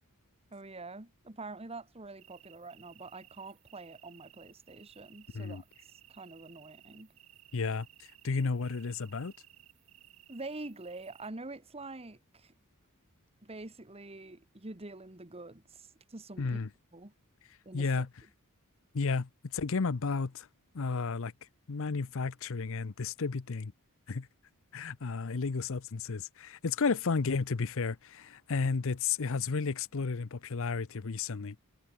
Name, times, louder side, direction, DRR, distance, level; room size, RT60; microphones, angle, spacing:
voice 1, 0.5-5.6 6.1-7.1 10.3-12.5 13.4-16.6 16.9-17.1 17.6-18.0, right 2 dB, 25° right, 1.6 m, -46 dB
sound 1, 2.2-11.3, right 14 dB, 65° right, 1.9 m, -59 dB
voice 2, 7.5-7.9 8.2-9.3 16.4-16.7 17.7-18.1 18.9-20.5 20.7-21.3 21.7-23.7 24.1-24.3 24.7-31.6, left 4 dB, 65° left, 0.7 m, -32 dB
head